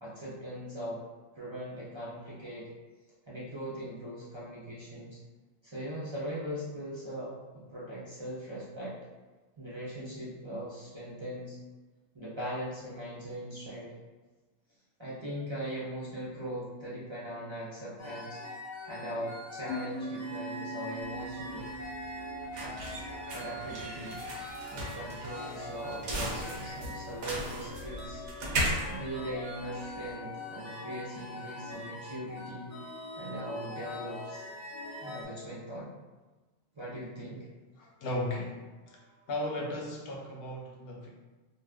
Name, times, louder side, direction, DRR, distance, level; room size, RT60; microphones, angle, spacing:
voice 1, 0.0-1.0 1.3-2.7 3.3-5.2 5.6-9.0 9.6-11.6 12.1-14.0 15.0-18.4 18.9-21.7 22.6-22.7 23.3-24.2 24.7-28.2 28.9-32.7 33.2-34.5 35.0-35.9 36.7-37.5, right 1 dB, 35° right, -9 dB, 0.5 m, -40 dB
sound 1, 18.0-35.2, left 2 dB, 20° left, 0.6 m, -43 dB
sound 2, 19.7-25.0, right 1 dB, 85° left, 1.0 m, -43 dB
sound 3, 21.0-30.1, right 1 dB, 75° right, 1.0 m, -37 dB
voice 2, 37.8-41.1, left 1 dB, 65° left, -1 dB, 0.8 m, -36 dB
2.5 x 2.3 x 3.4 m, 1.2 s
omnidirectional pair, 1.2 m